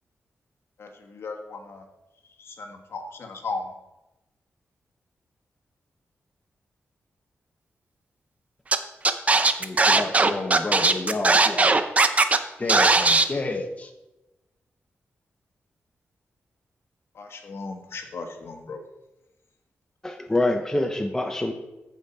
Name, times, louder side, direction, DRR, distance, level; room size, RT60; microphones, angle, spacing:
voice 1, 0.8-1.8 2.4-3.6 17.2-18.8, left 4 dB, 65° left, 3 dB, 1.4 m, -36 dB
Scratching (performance technique), 8.7-8.8 9.0-12.4 12.7-13.2, right 3 dB, 30° right, 0.6 m, -18 dB
voice 2, 9.6-11.7 12.6-13.9, left 2 dB, 30° left, 4 dB, 1.2 m, -30 dB
voice 3, 20.0-21.5, left 1 dB, 10° left, 4 dB, 0.7 m, -25 dB
14.5 x 5.3 x 4.3 m, 0.99 s
wide cardioid pair, 130°, 5 cm